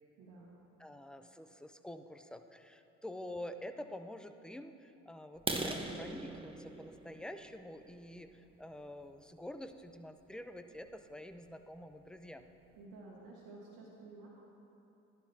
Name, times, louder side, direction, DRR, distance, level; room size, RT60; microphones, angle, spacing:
voice 1, 0.2-0.6 12.8-14.3, right 3 dB, 80° right, -7 dB, 1.4 m, -52 dB
voice 2, 0.8-12.4, left 1 dB, ahead, 8 dB, 0.5 m, -47 dB
sound 1, 5.4-9.1 9.7-9.8 10.3-10.4 10.8-11.0 11.3-11.4 11.9-12.0 12.2-12.7, right 2 dB, 15° right, 1.1 m, -41 dB
11.5 x 11.5 x 2.8 m, 2.8 s
hypercardioid pair, 50°, 35 cm